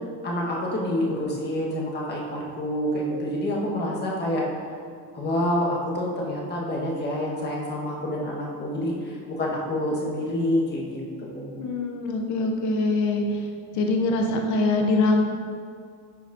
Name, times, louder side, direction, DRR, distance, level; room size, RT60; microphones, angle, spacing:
voice 1, 0.2-4.4 5.1-11.7, left 1 dB, 20° left, -4 dB, 1.2 m, -27 dB
voice 2, 11.6-13.4 13.7-15.2, left 2 dB, 35° left, 2 dB, 0.8 m, -23 dB
11.5 x 4.0 x 2.5 m, 2.2 s
cardioid pair, 145°, 48 cm